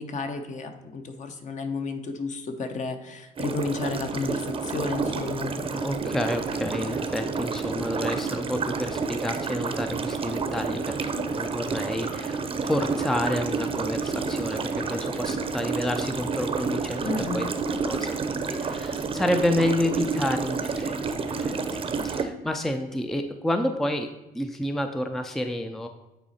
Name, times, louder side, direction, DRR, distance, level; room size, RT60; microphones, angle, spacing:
voice 1, 0.0-5.5 17.0-17.5, left 3 dB, 45° left, 7 dB, 0.9 m, -32 dB
sound 1, 3.4-22.2, right 4 dB, 35° right, 0.7 m, -29 dB
voice 2, 5.6-11.0 11.3-17.5 17.8-24.1 24.3-25.9, left 1 dB, ahead, 6 dB, 0.4 m, -29 dB
9.0 x 4.1 x 4.2 m, 1.0 s
cardioid pair, 110°, 17 cm